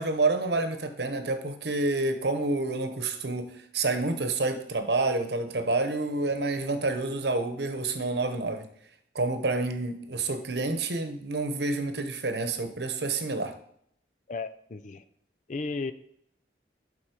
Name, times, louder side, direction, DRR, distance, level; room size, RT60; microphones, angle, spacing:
voice 1, 0.0-8.7 9.1-13.5, right 3 dB, 70° right, 8 dB, 1.0 m, -28 dB
voice 2, 14.3-15.0 15.5-15.9, left 3 dB, 45° left, 12 dB, 0.5 m, -34 dB
11.5 x 4.3 x 4.4 m, 0.69 s
head